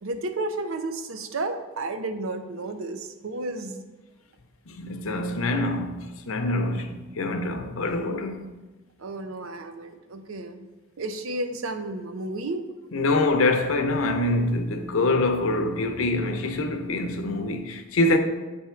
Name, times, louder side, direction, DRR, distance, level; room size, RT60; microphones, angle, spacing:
voice 1, 0.0-3.9 9.0-10.6 11.0-12.7, right 2 dB, 70° right, 0.6 m, -32 dB
voice 2, 4.7-8.5 12.9-18.2, left 2 dB, 70° left, 0.6 m, -25 dB
8.2 x 3.5 x 4.4 m
head